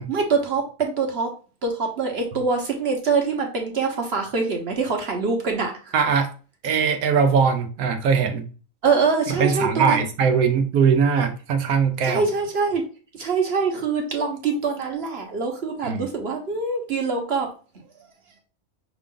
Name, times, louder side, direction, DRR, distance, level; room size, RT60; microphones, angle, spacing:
voice 1, 0.1-1.3 1.6-5.9 8.8-10.0 12.0-12.8 13.1-17.5, right 4 dB, 50° right, 1.0 m, -24 dB
voice 2, 5.9-6.3 6.6-8.5 9.4-12.2 15.8-16.1, right 6 dB, 80° right, 1.1 m, -20 dB
5.9 x 2.4 x 3.6 m
omnidirectional pair, 1.5 m